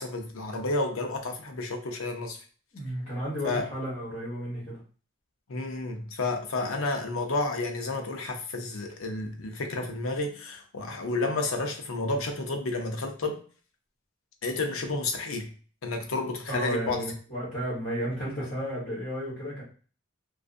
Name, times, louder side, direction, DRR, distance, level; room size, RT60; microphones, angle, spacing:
voice 1, 0.0-2.4 3.4-3.7 5.5-13.4 14.4-15.5 15.8-17.1, left 2 dB, 80° left, 3 dB, 0.6 m, -31 dB
voice 2, 2.7-4.8 16.5-19.6, equal, 40° left, -7 dB, 1.1 m, -33 dB
2.4 x 2.4 x 2.4 m, 0.39 s
head